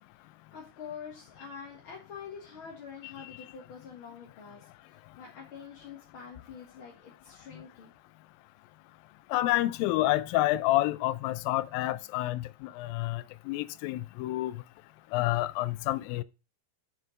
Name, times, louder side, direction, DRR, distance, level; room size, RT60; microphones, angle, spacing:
voice 1, 0.2-7.9, left 6 dB, 50° left, 1.7 m, -46 dB
voice 2, 9.3-14.5 15.1-16.2, left 16 dB, 80° left, 2.3 m, -29 dB
7.2 x 6.4 x 5.0 m
omnidirectional pair, 4.2 m